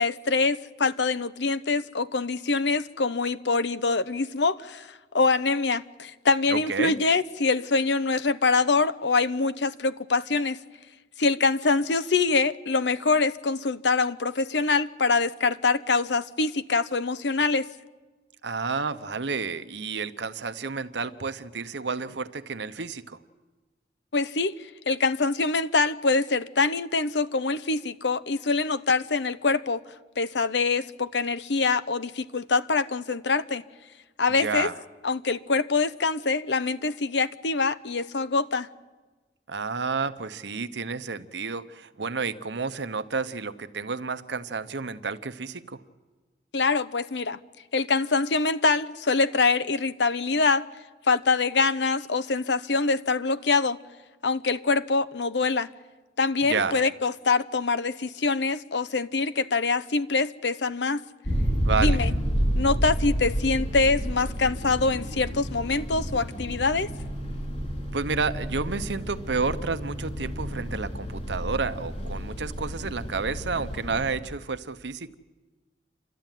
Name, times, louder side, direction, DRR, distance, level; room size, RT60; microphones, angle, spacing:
voice 1, 0.0-10.6 11.2-17.7 24.1-24.6 24.9-29.8 30.2-33.6 34.2-34.7 35.0-38.7 46.5-47.4 47.7-50.6 51.1-53.8 54.2-55.7 56.2-61.0 61.8-62.1 62.6-66.9, left 4 dB, 85° left, 0.9 m, -24 dB
voice 2, 6.5-7.0 18.4-23.2 34.4-34.8 39.5-45.8 56.5-56.8 61.6-62.0 67.9-75.1, right 4 dB, 85° right, 1.0 m, -30 dB
sound 1, 61.2-74.1, equal, 40° left, 5.2 m, -30 dB
29.0 x 13.0 x 9.2 m
head